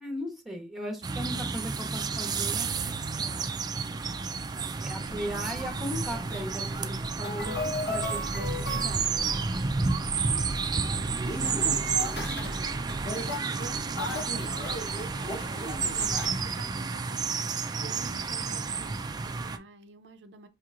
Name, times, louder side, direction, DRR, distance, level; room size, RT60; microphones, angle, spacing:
voice 1, 0.0-3.5 4.5-7.5 7.9-9.2, equal, ahead, 1.0 m, -38 dB
sound 1, 1.0-19.6, right 4 dB, 25° right, 0.3 m, -31 dB
sound 2, 5.0-16.3, left 1 dB, 70° left, 1.1 m, -37 dB
sound 3, 5.4-13.2, right 1 dB, 45° left, 0.7 m, -43 dB
voice 2, 10.7-12.7 13.0-15.2 15.9-20.5, right 3 dB, 85° right, 0.5 m, -50 dB
5.5 x 2.9 x 2.4 m
head